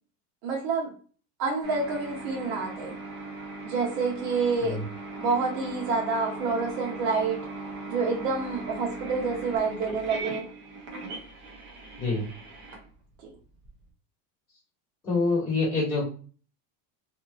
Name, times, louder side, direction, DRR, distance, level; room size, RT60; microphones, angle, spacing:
voice 1, 0.4-0.9 1.4-3.0 3.6-4.8 5.2-7.4 7.9-10.5 13.2-13.3, right 4 dB, 80° right, -2 dB, 1.0 m, -28 dB
sound 1, 1.6-13.7, right 3 dB, 25° right, 0.5 m, -39 dB
voice 2, 15.0-16.0, left 3 dB, 10° left, -10 dB, 1.2 m, -26 dB
2.8 x 2.4 x 2.3 m, 0.40 s
supercardioid pair, 160°, 49 cm